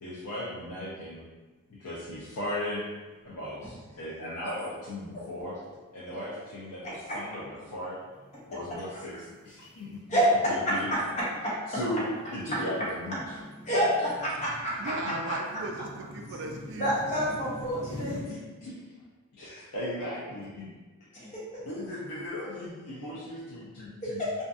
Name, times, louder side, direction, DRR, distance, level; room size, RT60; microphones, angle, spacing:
voice 1, 0.0-1.2 1.8-2.9 3.2-3.6 3.9-5.5 5.9-8.0 8.5-10.0 10.4-10.9 11.7-12.0 12.3-13.4 15.0-15.2 18.0-18.8 19.4-20.7 21.6-24.2, left 1 dB, 85° left, -8 dB, 0.5 m, -37 dB
sound 1, 1.7-2.3 2.6-2.7 3.4-3.9 4.5-4.7 5.3-18.2, left 1 dB, 15° right, 1.0 m, -46 dB
voice 2, 6.8-7.2 10.1-11.0 11.4-11.5 13.7-13.9 14.2-15.4 16.8-18.1 21.1-21.4 24.0-24.4, equal, 30° left, -7 dB, 0.7 m, -28 dB
voice 3, 14.8-17.4, right 2 dB, 55° right, 2 dB, 0.3 m, -37 dB
2.6 x 2.4 x 2.3 m, 1.3 s
head